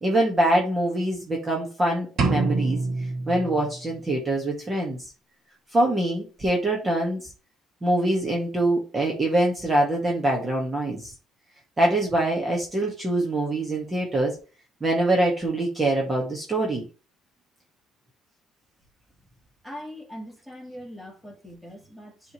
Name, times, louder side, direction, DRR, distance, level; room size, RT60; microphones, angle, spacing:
voice 1, 0.0-2.8 3.3-5.0 5.7-7.3 7.8-11.1 11.8-14.3 14.8-16.8, right 1 dB, 20° right, 1.8 m, -24 dB
sound 1, 2.2-4.1, right 3 dB, 50° right, 1.6 m, -26 dB
voice 2, 19.6-22.3, equal, ahead, 2.1 m, -41 dB
10.5 x 3.7 x 3.2 m
cardioid pair, 130°, 0 cm